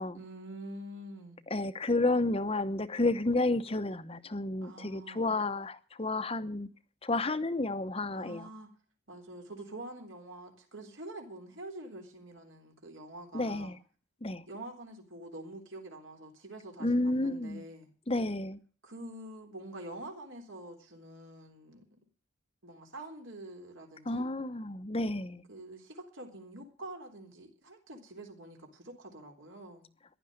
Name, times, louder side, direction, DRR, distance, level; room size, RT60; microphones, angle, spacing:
voice 1, 0.1-1.4 4.6-5.3 8.1-8.7 9.1-13.7 14.5-17.9 18.8-21.8 22.6-24.2 25.5-29.9, right 1 dB, 70° right, 3.7 m, -46 dB
voice 2, 1.5-6.7 7.0-8.5 13.3-13.8 14.2-14.4 16.8-17.6 18.1-18.6 24.1-25.4, left 2 dB, 30° left, 0.9 m, -31 dB
15.5 x 11.5 x 6.5 m
head